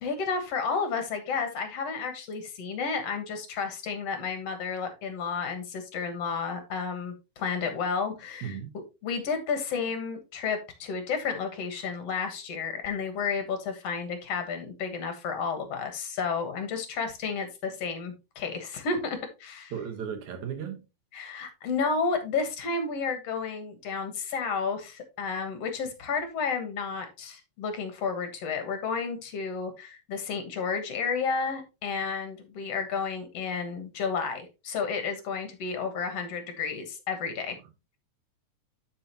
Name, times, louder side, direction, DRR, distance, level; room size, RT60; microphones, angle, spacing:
voice 1, 0.0-8.6 9.0-19.7 21.1-37.6, left 5 dB, 60° left, 2.4 m, -31 dB
voice 2, 8.4-8.7 19.7-20.8, right 8 dB, 80° right, 2.8 m, -35 dB
11.5 x 5.4 x 3.0 m
omnidirectional pair, 3.3 m